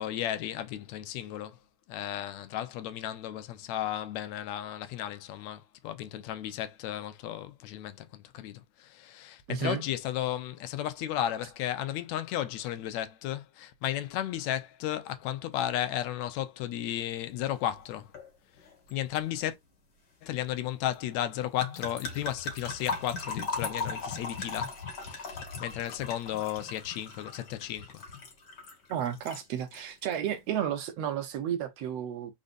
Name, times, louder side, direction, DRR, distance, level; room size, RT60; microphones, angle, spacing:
voice 1, 0.0-1.6 1.9-18.1 18.9-19.6 20.2-28.1, left 12 dB, 75° left, 1.9 m, -34 dB
voice 2, 9.5-9.8 28.9-32.3, right 9 dB, 70° right, 1.7 m, -32 dB
sound 1, 18.1-18.3 18.6-18.9 21.6-29.4 29.7-30.2, left 4 dB, 40° left, 2.0 m, -38 dB
5.2 x 4.0 x 2.5 m
omnidirectional pair, 3.5 m